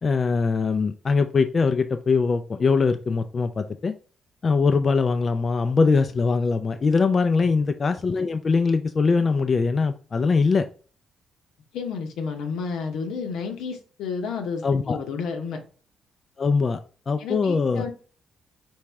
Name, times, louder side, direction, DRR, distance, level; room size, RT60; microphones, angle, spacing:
voice 1, 0.0-3.9 4.4-10.7 14.6-15.0 16.4-16.8 17.1-17.8, left 4 dB, 40° left, 8 dB, 0.3 m, -22 dB
voice 2, 11.7-15.6 17.2-17.9, left 5 dB, 85° left, 4 dB, 0.9 m, -31 dB
4.7 x 3.1 x 3.4 m, 0.40 s
cardioid pair, 90°, 0 cm